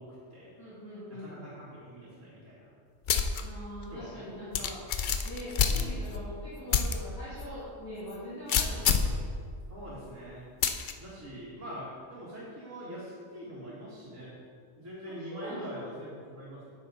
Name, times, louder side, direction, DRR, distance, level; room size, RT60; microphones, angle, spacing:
voice 1, 0.0-0.5 1.1-2.7 3.9-4.2 4.5-4.7 9.7-14.3 14.8-16.7, equal, 70° right, -9 dB, 2.2 m, -44 dB
voice 2, 0.6-1.5 3.4-4.8 5.2-9.3 15.0-15.8, equal, 15° left, -11 dB, 2.1 m, -42 dB
sound 1, 3.1-3.4 3.8-3.9 4.5-6.2 6.7-7.0 7.4-7.5 8.5-9.2 10.6-10.9, left 7 dB, 60° left, 0.5 m, -26 dB
9.7 x 6.8 x 3.9 m, 2.3 s
omnidirectional pair, 1.3 m